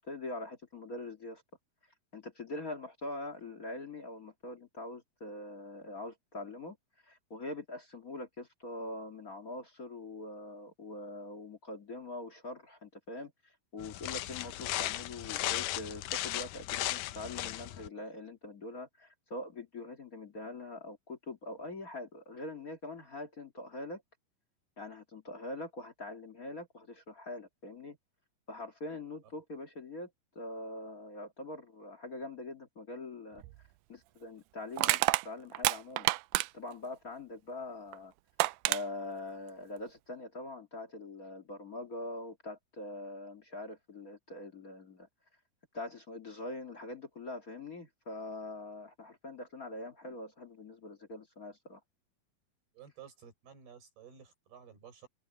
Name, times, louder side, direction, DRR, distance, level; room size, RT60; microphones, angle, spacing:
voice 1, 0.0-1.4 2.1-6.8 7.0-24.0 24.8-28.0 28.5-30.1 30.3-33.4 33.9-36.1 36.5-38.1 38.6-45.1 45.7-51.8, left 2 dB, 40° left, 1.2 m, -43 dB
sound 1, 13.8-17.9, left 14 dB, 80° left, 1.8 m, -36 dB
Crushing, 33.4-33.6 34.8-36.7 37.9-38.0 38.4-38.8, right 21 dB, 90° right, 2.0 m, -28 dB
voice 2, 52.7-55.1, right 8 dB, 75° right, 8.4 m, -53 dB
omnidirectional pair, 4.6 m